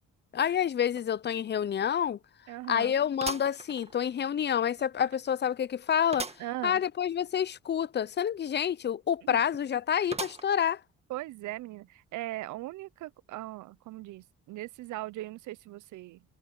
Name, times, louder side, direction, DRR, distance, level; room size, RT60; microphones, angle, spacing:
voice 1, 0.3-2.2 2.7-6.3 6.6-10.8, left 9 dB, 35° left, 0.5 m, -28 dB
sound 1, 1.0-1.1 1.5-1.6 3.2-4.3 4.8-4.9 6.1-6.5 6.9-7.0 7.2-7.3 10.1-10.7 11.3-11.4 12.4-12.5, right 3 dB, 20° right, 1.9 m, -39 dB
voice 2, 2.5-2.9 6.4-6.8 9.2-9.4 11.1-16.2, right 17 dB, 75° right, 0.6 m, -39 dB
cardioid pair, 90°, 30 cm